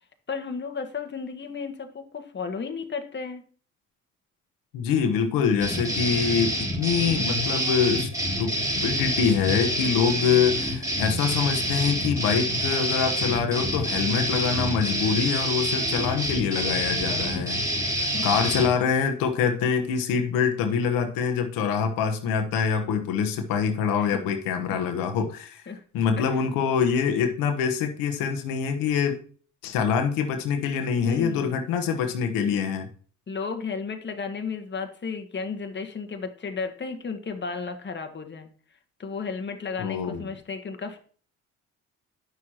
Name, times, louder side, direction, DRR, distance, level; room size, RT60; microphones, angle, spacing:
voice 1, 0.3-3.4 17.7-18.3 24.0-24.1 25.7-25.8 26.2-26.3 31.0-31.6 33.3-38.5 39.0-41.0, left 5 dB, 35° left, 6 dB, 1.3 m, -33 dB
voice 2, 4.7-8.1 8.4-8.6 8.8-17.6 17.9-25.6 25.9-29.2 29.6-32.9 39.8-40.2, left 6 dB, 85° left, 6 dB, 1.1 m, -25 dB
sound 1, 5.6-18.7, equal, 10° right, 4.1 m, -27 dB
9.4 x 6.4 x 2.8 m, 0.42 s
supercardioid pair, 65°, 33 cm